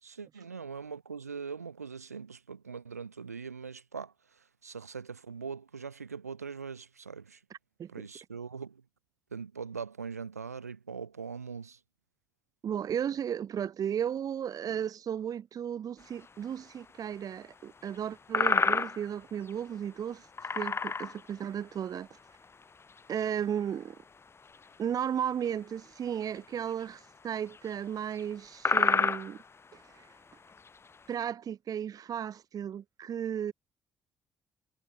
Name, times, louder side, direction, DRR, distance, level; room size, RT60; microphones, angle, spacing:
voice 1, 0.0-4.1 4.6-7.4 7.9-8.8 9.3-11.8, right 5 dB, 85° right, 5.5 m, -41 dB
voice 2, 7.5-8.1 12.6-20.3 20.5-22.1 23.1-24.0 24.8-29.4 29.7-30.1 31.1-33.5, right 9 dB, 50° right, 3.2 m, -35 dB
sound 1, 16.2-16.3 17.9-18.0 18.3-19.1 19.5-19.6 20.4-21.3 22.4-22.5 22.9-23.3 24.5-24.6 26.2-26.4 26.7-26.8 27.5-27.7 28.2-28.3 28.6-29.4 30.5-30.7, left 4 dB, 30° left, 2.4 m, -28 dB
figure-of-eight pair, 45°, 8 cm